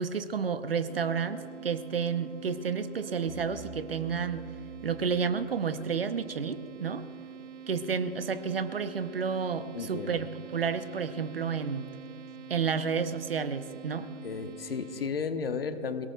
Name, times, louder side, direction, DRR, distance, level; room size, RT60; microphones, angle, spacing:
voice 1, 0.0-4.5 4.8-7.1 7.7-11.9 12.5-14.1, right 6 dB, 50° right, 13 dB, 0.7 m, -31 dB
sound 1, 0.9-15.1, right 8 dB, 70° right, 1.0 m, -46 dB
sound 2, 3.3-6.0, right 2 dB, 10° left, 0.6 m, -49 dB
voice 2, 9.7-10.2 14.2-16.1, left 5 dB, 50° left, 10 dB, 0.9 m, -34 dB
28.5 x 17.5 x 2.2 m, 2.9 s
hypercardioid pair, 170°, 38 cm